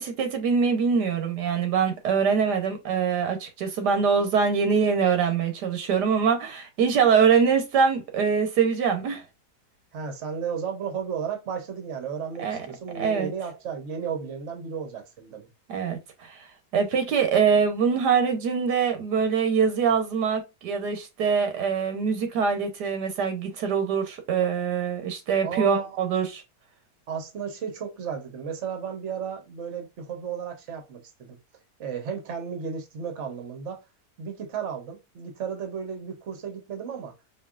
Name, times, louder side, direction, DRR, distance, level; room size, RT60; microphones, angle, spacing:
voice 1, 0.0-9.2 12.4-12.6 12.9-13.3 15.7-16.4 16.7-26.4, right 6 dB, 90° right, 1.6 m, -24 dB
voice 2, 9.9-15.5 25.4-26.0 27.1-31.4 31.8-33.8 34.2-37.1, right 7 dB, 50° right, 1.2 m, -34 dB
4.7 x 2.9 x 2.4 m
omnidirectional pair, 1.7 m